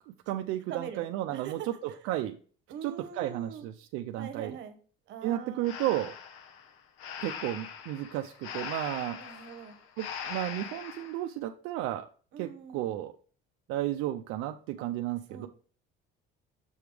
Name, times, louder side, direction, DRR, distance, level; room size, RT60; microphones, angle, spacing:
voice 1, 0.1-1.6 2.0-2.4 2.8-4.6 5.2-6.1 7.2-9.2 10.0-12.1 12.4-13.1 13.7-15.5, right 14 dB, 85° right, 5 dB, 0.5 m, -33 dB
voice 2, 0.7-2.0 2.7-3.7 4.2-4.8 5.1-5.7 9.1-9.8 12.3-13.0 14.8-14.9 15.3-15.5, right 8 dB, 65° right, 9 dB, 1.1 m, -43 dB
Breathing, 5.6-11.2, left 7 dB, 85° left, 0.8 m, -41 dB
7.0 x 3.4 x 4.9 m, 0.42 s
cardioid pair, 140°, 21 cm